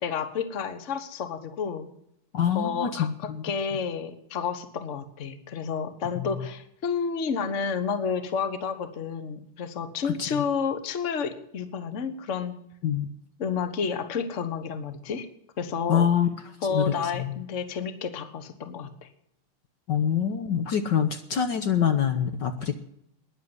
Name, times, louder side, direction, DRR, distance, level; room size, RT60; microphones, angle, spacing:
voice 1, 0.0-1.9 2.5-12.5 13.4-15.3 15.6-16.1 16.6-19.1, left 6 dB, 40° left, 10 dB, 1.4 m, -30 dB
voice 2, 2.3-3.5 6.2-6.3 10.0-10.4 12.8-13.1 15.9-16.3 16.7-17.3 19.9-22.7, left 8 dB, 60° left, 8 dB, 1.6 m, -25 dB
13.0 x 10.5 x 9.6 m, 0.75 s
omnidirectional pair, 2.4 m